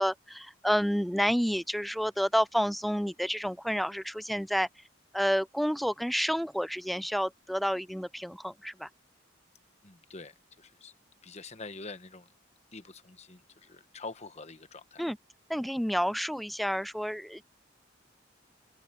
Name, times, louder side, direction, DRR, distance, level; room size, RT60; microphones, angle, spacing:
voice 1, 0.0-4.7 5.1-8.9 15.0-15.2 15.5-17.4, equal, ahead, 0.3 m, -29 dB
voice 2, 9.8-10.9 11.2-12.3 12.7-15.0, left 3 dB, 35° left, 1.3 m, -45 dB
head